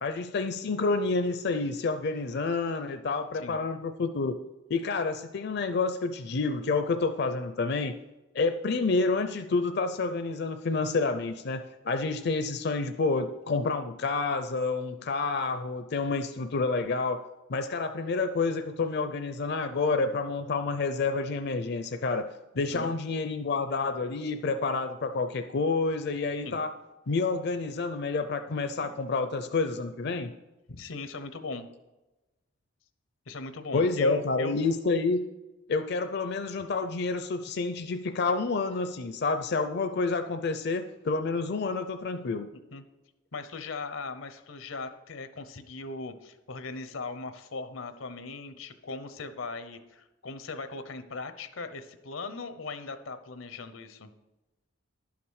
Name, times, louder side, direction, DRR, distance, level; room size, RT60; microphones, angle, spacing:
voice 1, 0.0-4.4 4.7-7.9 8.3-17.2 17.5-22.3 22.6-26.7 27.1-30.3 33.7-35.2 35.7-42.5, left 3 dB, 55° left, 8 dB, 0.5 m, -29 dB
voice 2, 22.5-22.9 26.4-26.6 28.8-28.9 30.7-31.7 33.3-34.6 42.7-42.8 43.3-54.1, left 4 dB, 90° left, 10 dB, 0.9 m, -39 dB
11.0 x 5.9 x 6.4 m, 1.0 s
head